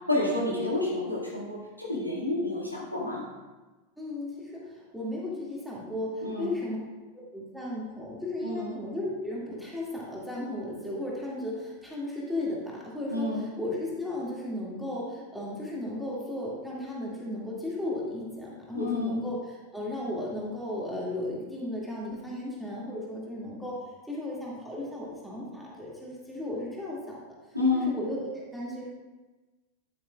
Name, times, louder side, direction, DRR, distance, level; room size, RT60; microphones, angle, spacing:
voice 1, 0.1-3.2 6.2-6.5 8.4-8.7 13.1-13.4 18.7-19.2 27.5-27.9, left 2 dB, 90° left, -5 dB, 2.0 m, -29 dB
voice 2, 4.0-6.8 7.3-19.4 19.7-23.8 24.1-27.2 27.7-28.8, left 1 dB, ahead, -6 dB, 2.2 m, -35 dB
9.7 x 8.4 x 2.4 m, 1.2 s
figure-of-eight pair, 90°, 0 cm